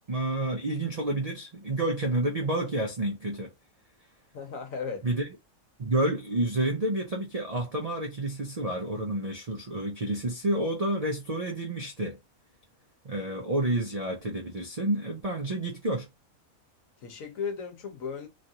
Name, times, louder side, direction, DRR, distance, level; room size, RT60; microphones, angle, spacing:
voice 1, 0.1-3.5 5.0-5.3 5.8-12.2 13.0-16.1, right 1 dB, 55° right, 0.4 m, -29 dB
voice 2, 4.3-5.1 17.0-18.3, left 6 dB, 70° left, 1.3 m, -35 dB
3.1 x 2.4 x 2.7 m
omnidirectional pair, 1.5 m